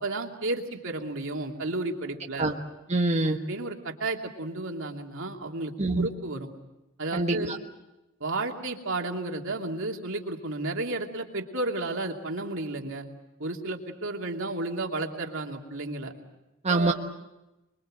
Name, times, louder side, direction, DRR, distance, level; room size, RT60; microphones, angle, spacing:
voice 1, 0.0-2.5 3.5-6.5 7.0-7.5 8.2-13.0 13.4-16.1 16.7-16.9, right 2 dB, 65° right, 2 dB, 2.9 m, -32 dB
voice 2, 2.9-3.4 5.8-6.1 7.1-7.5 16.6-16.9, right 2 dB, 30° right, 1 dB, 1.3 m, -24 dB
26.0 x 23.0 x 7.8 m, 0.98 s
head